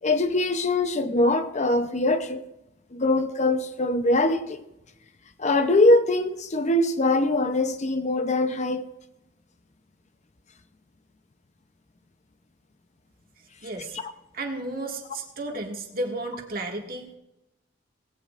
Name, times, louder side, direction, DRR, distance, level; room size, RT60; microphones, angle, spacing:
voice 1, 0.0-2.4 2.9-4.6 5.4-8.8, left 2 dB, 40° left, 0.7 m, -22 dB
voice 2, 13.6-14.0 14.3-17.1, right 2 dB, 55° right, 2.0 m, -33 dB
19.0 x 16.5 x 2.6 m
head